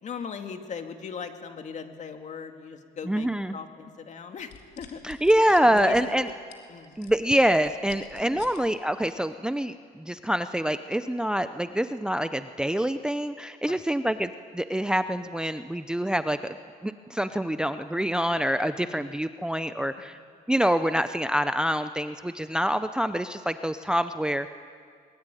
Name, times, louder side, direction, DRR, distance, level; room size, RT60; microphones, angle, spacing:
voice 1, 0.0-5.1 5.6-6.1 6.7-7.0 8.3-8.4 13.6-13.8 18.8-19.1 20.0-20.1, left 6 dB, 45° left, 6 dB, 2.3 m, -39 dB
voice 2, 3.1-3.6 5.0-6.3 7.0-16.6 16.8-20.2 20.5-24.5, equal, 5° right, 10 dB, 0.7 m, -26 dB
sound 1, 4.4-8.6 9.1-9.3, left 9 dB, 80° left, 3.2 m, -49 dB
23.0 x 21.5 x 9.2 m, 2.2 s
cardioid pair, 110°, 17 cm